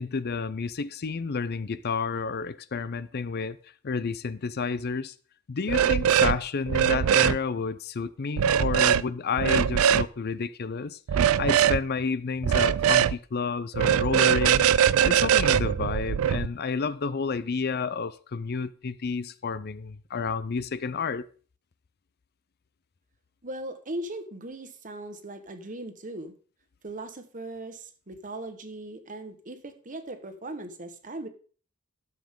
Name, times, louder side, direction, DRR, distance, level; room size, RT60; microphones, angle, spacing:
voice 1, 0.0-3.6 3.8-5.1 5.5-14.7 15.0-21.3, left 5 dB, 50° left, 0.5 m, -30 dB
sound 1, 5.7-6.4 6.7-7.4 8.4-9.0 9.4-10.1 11.1-11.8 12.4-13.1 13.7-16.4, right 9 dB, 85° right, 0.4 m, -21 dB
voice 2, 23.4-26.3 26.8-31.3, right 1 dB, 40° right, 1.3 m, -39 dB
12.5 x 7.3 x 3.7 m
head